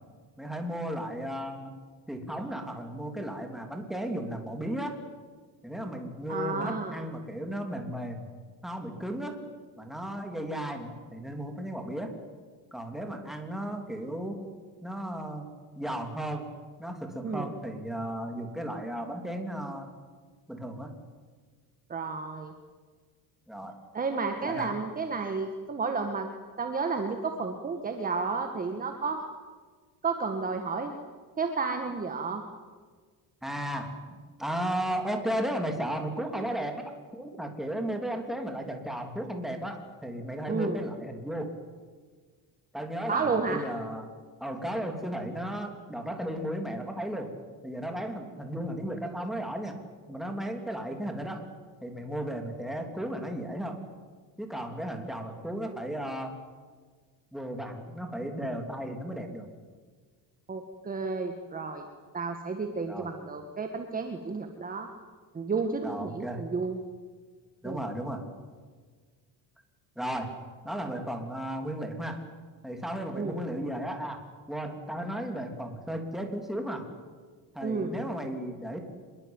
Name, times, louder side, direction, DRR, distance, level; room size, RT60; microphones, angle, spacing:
voice 1, 0.4-1.7 2.1-5.0 5.6-8.2 8.6-9.4 9.8-12.1 12.7-14.4 14.8-15.5 15.8-16.5 16.8-19.9 20.5-20.9 23.5-23.8 24.4-24.7 33.4-34.0 34.4-41.5 42.7-44.1 44.4-47.3 47.6-49.7 50.1-51.4 51.8-53.8 54.4-56.3 57.3-59.5 62.9-63.1 65.8-66.4 67.6-68.3 70.0-70.4 70.6-72.2 72.6-74.2 74.5-76.9 77.5-78.9, right 1 dB, ahead, 3 dB, 3.2 m, -35 dB
voice 2, 6.3-6.9 17.2-17.5 21.9-22.5 23.9-26.3 26.6-29.2 30.0-30.9 31.4-32.4 40.5-40.8 43.1-43.7 60.5-61.9 62.1-64.9 65.3-66.8 67.6-67.8 73.1-73.4 77.6-77.9, right 4 dB, 20° right, 5 dB, 1.7 m, -31 dB
25.5 x 21.5 x 9.0 m, 1.5 s
cardioid pair, 145°, 39 cm